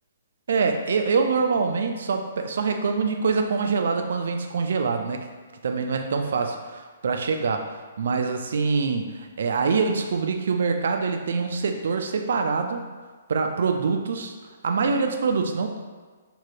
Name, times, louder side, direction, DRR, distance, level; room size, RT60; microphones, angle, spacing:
voice 1, 0.5-5.3 5.6-7.7 8.0-12.9 13.3-14.3 14.6-15.8, right 4 dB, 60° right, 5 dB, 0.3 m, -25 dB
3.5 x 2.3 x 2.8 m, 1.4 s
figure-of-eight pair, 125°, 0 cm